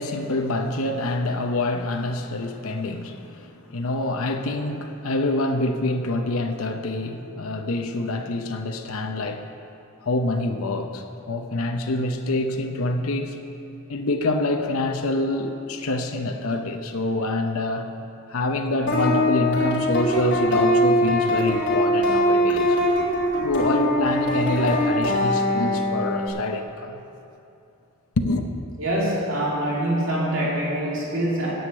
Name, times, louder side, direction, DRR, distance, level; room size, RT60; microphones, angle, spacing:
voice 1, 0.0-9.4 10.0-13.4 13.9-17.9 18.3-22.8 23.4-27.0 28.2-28.5, left 2 dB, 85° left, 5 dB, 0.8 m, -26 dB
sound 1, 18.9-26.3, equal, 55° left, 2.9 m, -22 dB
voice 2, 28.8-31.5, right 1 dB, 65° right, -4 dB, 2.2 m, -24 dB
9.4 x 7.9 x 8.6 m, 2.7 s
head